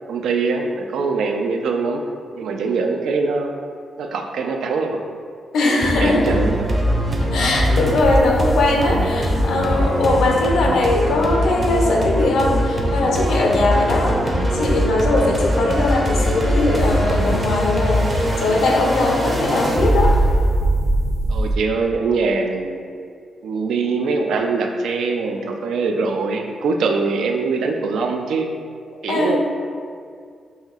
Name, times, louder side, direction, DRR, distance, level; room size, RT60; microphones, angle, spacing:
voice 1, 0.1-2.0 2.4-3.5 4.0-5.0 5.6-6.7 18.0-18.4 21.3-22.8 23.4-28.5 29.0-29.4, right 4 dB, 85° right, 3 dB, 0.3 m, -23 dB
voice 2, 5.5-6.4 7.3-20.2 29.1-29.4, left 2 dB, 90° left, 0 dB, 0.6 m, -20 dB
sound 1, 5.8-21.6, equal, 35° right, 0.6 m, -21 dB
5.5 x 2.6 x 2.4 m, 2.1 s
cardioid pair, 105°, 0 cm